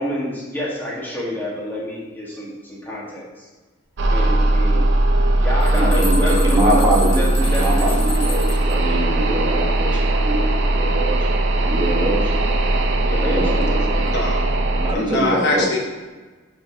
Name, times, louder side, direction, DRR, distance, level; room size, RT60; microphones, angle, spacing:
voice 1, 0.0-3.5 4.1-4.8 5.3-6.8 7.1-7.9 13.0-14.1, left 1 dB, 10° left, -6 dB, 1.6 m, -28 dB
sound 1, 4.0-14.9, right 1 dB, 60° right, 0.6 m, -19 dB
sound 2, 5.2-5.3 5.6-8.7, left 1 dB, 80° left, 2.0 m, -32 dB
voice 2, 5.7-11.2 11.7-12.3 13.2-13.8 14.8-15.7, right 1 dB, 25° right, -3 dB, 1.2 m, -23 dB
voice 3, 14.9-15.8, left 2 dB, 55° left, 0 dB, 0.9 m, -22 dB
5.3 x 3.8 x 4.9 m, 1.3 s
head